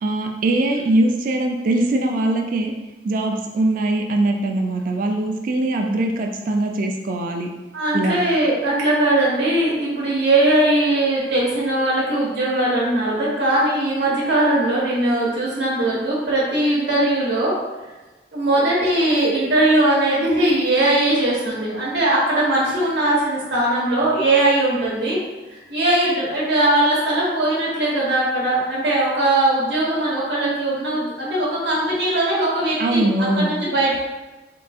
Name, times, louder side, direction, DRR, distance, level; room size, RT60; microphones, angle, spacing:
voice 1, 0.0-2.7 3.0-7.5 7.9-8.2 32.8-33.5, right 2 dB, 50° right, 3 dB, 0.3 m, -21 dB
voice 2, 7.7-17.5 18.3-25.2 25.5-33.1 33.3-34.0, right 1 dB, 75° right, -6 dB, 0.9 m, -20 dB
3.7 x 2.3 x 2.5 m, 1.2 s
head